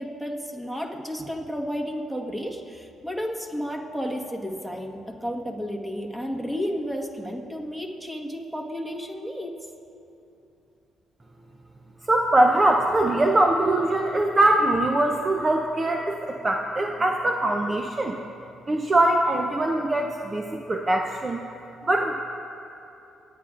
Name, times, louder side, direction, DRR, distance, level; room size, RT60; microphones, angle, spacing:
voice 1, 0.0-9.5, equal, 5° right, 0 dB, 1.5 m, -32 dB
voice 2, 12.1-18.2 18.7-21.4 21.8-22.1, right 1 dB, 30° right, 2 dB, 0.6 m, -22 dB
24.0 x 10.0 x 2.5 m, 2.8 s
cardioid pair, 90°, 0 cm